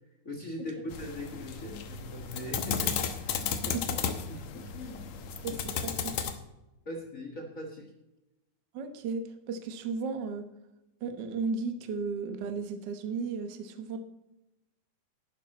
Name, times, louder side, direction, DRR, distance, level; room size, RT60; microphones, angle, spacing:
voice 1, 0.2-3.8 4.3-5.0 5.3-5.6 6.8-7.9, left 1 dB, 45° left, 0 dB, 1.0 m, -40 dB
sound 1, 0.9-6.3, left 7 dB, 65° left, 2.0 m, -34 dB
voice 2, 5.4-6.3 8.7-10.4 11.0-14.0, right 4 dB, 85° right, 7 dB, 0.9 m, -35 dB
11.5 x 10.0 x 4.2 m, 0.95 s
omnidirectional pair, 3.7 m